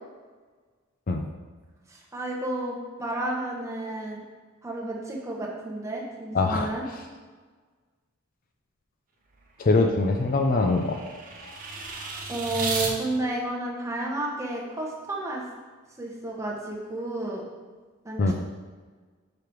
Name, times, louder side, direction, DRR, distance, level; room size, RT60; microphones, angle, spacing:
voice 1, 1.9-4.2 4.6-6.8 12.3-15.4 16.0-17.4 18.0-18.3, right 2 dB, 15° right, -2 dB, 1.0 m, -31 dB
voice 2, 6.3-6.7 9.6-11.0 18.2-18.3, left 3 dB, 40° left, 4 dB, 0.4 m, -22 dB
sound 1, 9.3-12.9, right 3 dB, 40° right, 0.9 m, -35 dB
5.1 x 4.9 x 4.6 m, 1.4 s
head